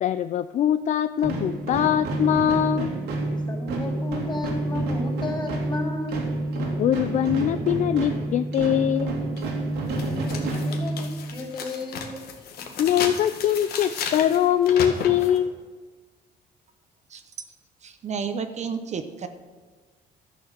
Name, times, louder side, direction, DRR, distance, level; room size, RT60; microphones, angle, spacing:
voice 1, 0.0-2.9 6.8-9.2 12.8-15.5, left 10 dB, 45° left, 13 dB, 0.4 m, -22 dB
sound 1, 1.2-11.4, right 2 dB, 80° right, 2.5 m, -28 dB
voice 2, 3.5-6.2 9.8-12.7, left 2 dB, 25° left, -2 dB, 3.4 m, -34 dB
sound 2, 9.4-9.5 10.0-15.4, left 6 dB, 70° left, 1.7 m, -34 dB
voice 3, 17.8-19.3, right 6 dB, 40° right, 8 dB, 0.9 m, -31 dB
12.5 x 7.1 x 6.6 m, 1.4 s
cardioid pair, 110°, 17 cm